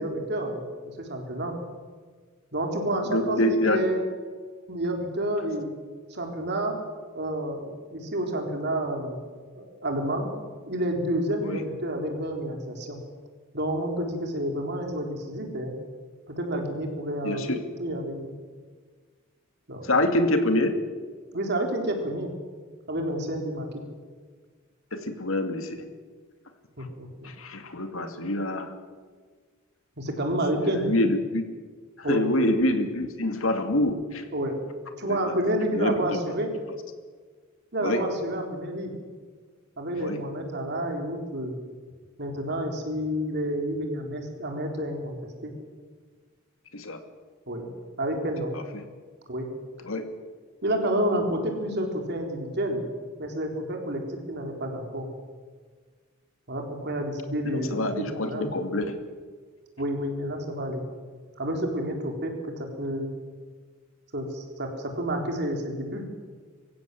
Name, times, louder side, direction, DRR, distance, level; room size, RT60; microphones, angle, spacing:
voice 1, 0.0-1.5 2.5-4.0 4.7-5.7 6.1-6.8 7.1-9.2 9.6-10.3 10.7-13.0 13.5-15.7 16.3-17.5 17.8-18.3 19.7-19.9 21.3-22.3 22.9-23.8 26.8-27.3 30.0-30.9 32.0-32.3 34.3-34.6 35.0-36.5 37.7-38.9 39.8-41.5 42.2-45.5 47.5-47.7 48.0-48.6 49.3-49.5 50.6-52.8 53.2-55.1 56.5-58.5 59.8-60.8 61.4-63.1 64.1-66.1, right 1 dB, 55° right, 3 dB, 4.1 m, -29 dB
voice 2, 3.0-3.8 11.4-11.6 17.2-17.6 19.8-20.8 24.9-25.9 27.2-28.7 30.6-31.4 32.1-34.3 35.0-35.2 35.7-36.0 37.8-38.0 40.0-40.2 46.7-47.0 48.5-48.8 49.8-50.1 57.4-59.0, left 1 dB, 75° left, 7 dB, 2.5 m, -26 dB
24.5 x 15.5 x 7.8 m, 1.6 s
head